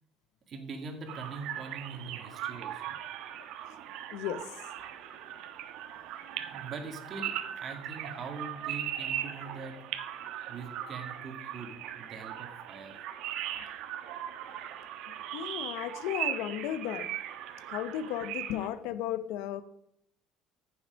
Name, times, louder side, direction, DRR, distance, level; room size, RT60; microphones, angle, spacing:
voice 1, 0.5-3.0 6.3-9.8 10.5-13.0, right 4 dB, 35° right, 4 dB, 2.1 m, -43 dB
sound 1, 1.1-18.7, right 11 dB, 65° right, 1.3 m, -39 dB
voice 2, 4.1-4.4 15.3-17.1 17.7-19.6, left 11 dB, 75° left, 13 dB, 0.9 m, -34 dB
15.0 x 7.1 x 5.1 m, 0.74 s
cardioid pair, 145°, 0 cm